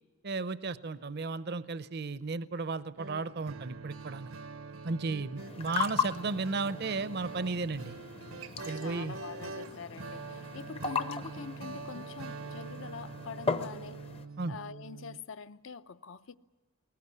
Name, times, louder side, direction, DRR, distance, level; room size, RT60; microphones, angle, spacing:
voice 1, 0.2-4.3 4.8-8.0 8.6-9.2 14.4-14.6, right 3 dB, 50° right, 0.6 m, -34 dB
sound 1, 3.0-15.2, right 4 dB, 80° right, 0.9 m, -44 dB
sound 2, 5.4-14.3, left 5 dB, 30° left, 0.7 m, -38 dB
voice 2, 8.7-14.0 14.5-16.4, left 5 dB, 65° left, 0.7 m, -44 dB
20.0 x 19.5 x 9.7 m
head